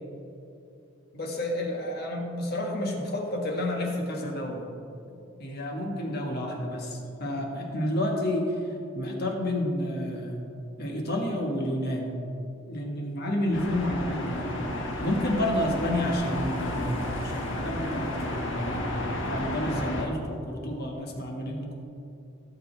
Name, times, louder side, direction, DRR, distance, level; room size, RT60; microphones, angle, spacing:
voice 1, 1.1-4.7 5.1-8.6 8.9-10.4 10.8-12.1 12.7-14.5 15.0-18.8 19.2-21.7, left 1 dB, 50° left, 0 dB, 1.6 m, -30 dB
sound 1, 13.5-20.1, left 1 dB, 65° left, 1.5 m, -32 dB
17.0 x 6.8 x 3.4 m, 2.7 s
head